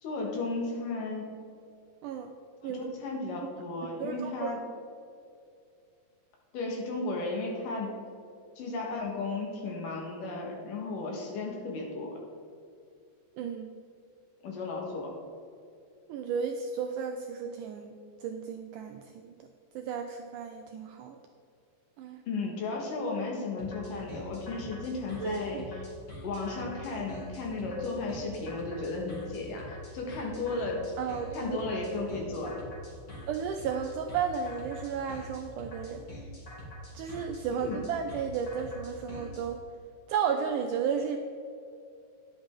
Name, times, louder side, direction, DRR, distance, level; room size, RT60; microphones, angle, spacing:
voice 1, 0.0-1.3 2.6-4.6 6.5-8.0 8.6-12.1 14.4-15.1 22.3-25.8 26.2-30.9 31.3-32.6 37.5-37.8, left 3 dB, 70° left, 0 dB, 3.0 m, -34 dB
voice 2, 4.0-4.5 13.4-13.7 16.1-19.3 19.8-21.2 22.0-22.2 25.2-25.7 31.0-31.7 33.3-36.1 36.9-39.6 40.1-41.2, right 7 dB, 85° right, 5 dB, 1.8 m, -33 dB
sound 1, 23.6-39.4, equal, 30° left, 2.0 m, -45 dB
11.0 x 8.7 x 3.6 m, 2.5 s
omnidirectional pair, 4.2 m